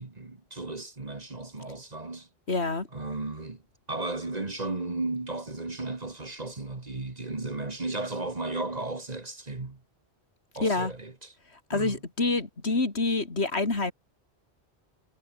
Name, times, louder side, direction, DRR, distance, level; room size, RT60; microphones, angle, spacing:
voice 1, 0.0-2.3 2.9-3.6 3.9-9.8 10.6-11.3 11.7-12.0, right 2 dB, 35° right, 1.9 m, -35 dB
voice 2, 2.5-2.9 10.6-10.9 11.7-13.9, left 3 dB, 70° left, 3.2 m, -27 dB
omnidirectional pair, 1.2 m